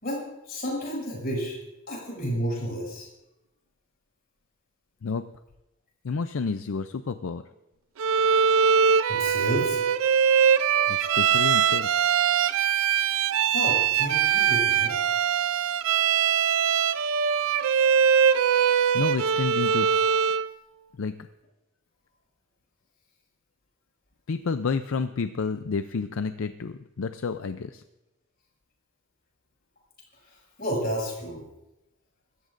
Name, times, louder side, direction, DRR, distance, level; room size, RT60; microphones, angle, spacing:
voice 1, 0.0-1.6 1.9-3.1 9.1-9.8 13.5-15.0 30.6-31.4, equal, 45° left, -2 dB, 6.7 m, -31 dB
voice 2, 6.0-7.4 10.9-11.9 18.9-19.9 21.0-21.1 24.3-27.8, left 5 dB, 70° left, 10 dB, 0.5 m, -30 dB
Bowed string instrument, 8.0-20.5, right 7 dB, 75° right, 0.5 m, -22 dB
25.0 x 14.0 x 2.6 m, 0.94 s
head